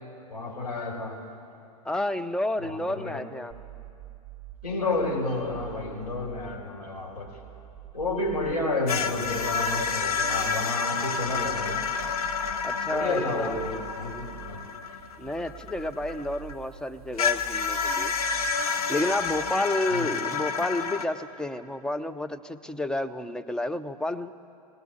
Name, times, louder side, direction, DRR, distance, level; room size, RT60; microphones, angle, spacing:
voice 1, 0.3-1.2 2.6-3.2 4.6-7.4 7.9-11.8 12.9-14.6 19.9-20.1, left 2 dB, 80° left, -2 dB, 4.6 m, -31 dB
voice 2, 1.8-3.5 12.6-13.6 15.2-18.1 18.9-24.3, left 1 dB, 5° left, 8 dB, 0.6 m, -30 dB
sound 1, 3.5-19.5, right 13 dB, 15° right, 1.7 m, -47 dB
sound 2, 8.9-16.5 17.2-21.0, left 5 dB, 65° left, 1.3 m, -29 dB
20.0 x 18.0 x 8.3 m, 2.6 s
figure-of-eight pair, 95°, 20 cm